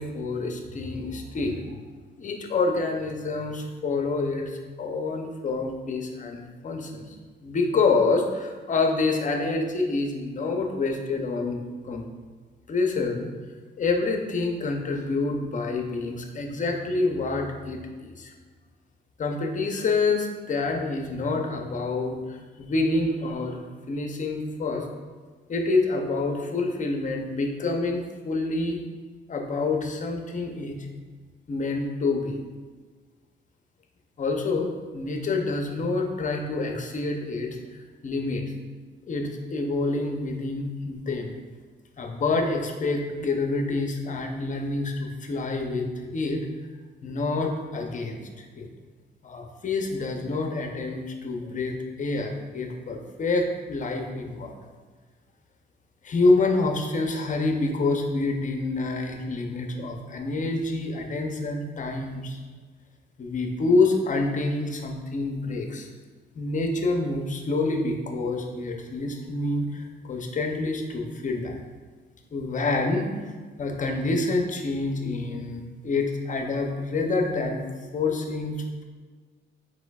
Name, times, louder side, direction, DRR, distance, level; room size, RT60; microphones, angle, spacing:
voice 1, 0.0-1.6 2.2-7.1 7.4-12.1 12.7-13.3 13.8-18.3 19.2-23.6 23.9-24.9 25.5-28.8 29.3-30.8 31.5-32.4 34.2-38.4 39.1-41.4 42.0-46.5 47.0-48.7 49.2-54.5 56.0-62.4 63.2-65.9 66.4-71.6 72.3-73.1 73.6-77.6 77.9-78.8, left 3 dB, 40° left, 3 dB, 0.6 m, -27 dB
4.8 x 4.0 x 2.3 m, 1.4 s
cardioid pair, 90°, 20 cm